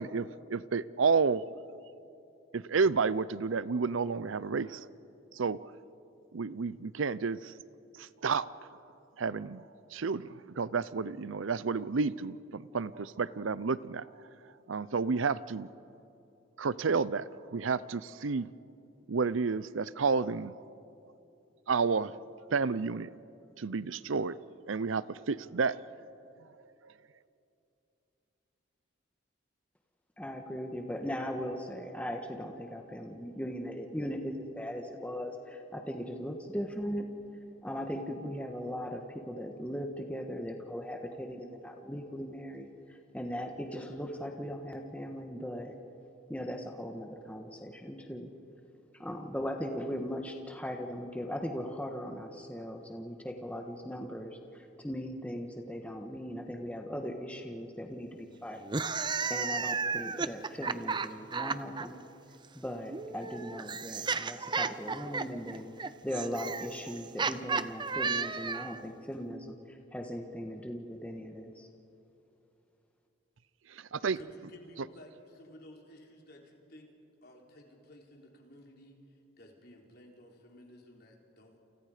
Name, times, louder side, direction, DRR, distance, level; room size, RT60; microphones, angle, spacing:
voice 1, 0.0-1.4 2.5-4.9 5.3-5.6 6.3-7.5 7.9-8.7 9.2-9.6 9.9-14.1 14.7-15.7 16.6-18.5 19.1-20.6 21.7-22.1 22.5-23.1 23.6-24.4 24.7-25.8 73.7-74.2, right 5 dB, 80° right, 18 dB, 0.6 m, -31 dB
voice 2, 30.2-37.1 37.6-42.7 43.1-45.7 46.3-48.3 49.0-58.6 58.9-62.0 62.5-65.7 66.0-71.7, equal, 5° left, 3 dB, 1.3 m, -39 dB
sound 1, 58.6-61.9 62.9-68.8, right 5 dB, 25° right, 0.6 m, -33 dB
voice 3, 74.1-76.9 77.2-81.6, left 1 dB, 50° left, 0 dB, 3.7 m, -54 dB
29.5 x 29.0 x 5.0 m, 2.8 s
head